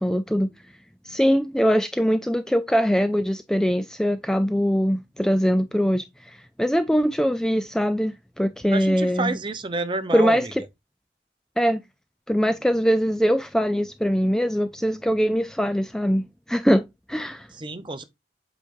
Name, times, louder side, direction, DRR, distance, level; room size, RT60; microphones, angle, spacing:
voice 1, 0.0-0.5 1.0-9.4 10.1-10.6 11.6-11.8 12.3-17.5, equal, 5° left, 0.3 m, -22 dB
voice 2, 8.7-10.5 17.6-18.0, right 2 dB, 30° right, 0.8 m, -29 dB
8.1 x 5.0 x 2.6 m
head